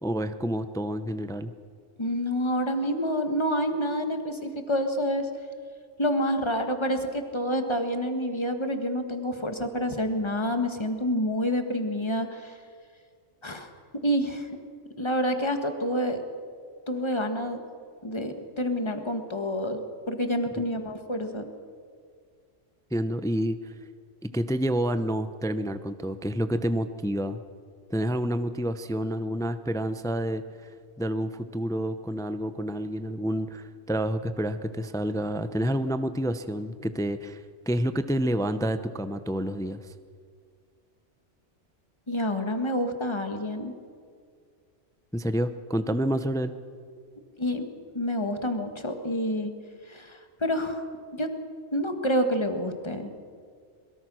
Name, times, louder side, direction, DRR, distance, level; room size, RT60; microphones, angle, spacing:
voice 1, 0.0-1.5 22.9-23.7 24.2-27.4 27.9-39.9 45.1-46.5, equal, 5° left, 11 dB, 0.6 m, -29 dB
voice 2, 2.0-5.3 6.0-12.6 13.4-13.7 14.0-14.5 15.0-16.2 16.9-17.6 18.0-19.8 20.1-21.4 42.1-43.7 47.4-47.7 47.9-49.5 49.9-50.8 51.1-51.3 51.7-53.1, equal, 25° left, 6 dB, 1.7 m, -28 dB
22.5 x 22.0 x 6.3 m, 2.1 s
omnidirectional pair, 1.2 m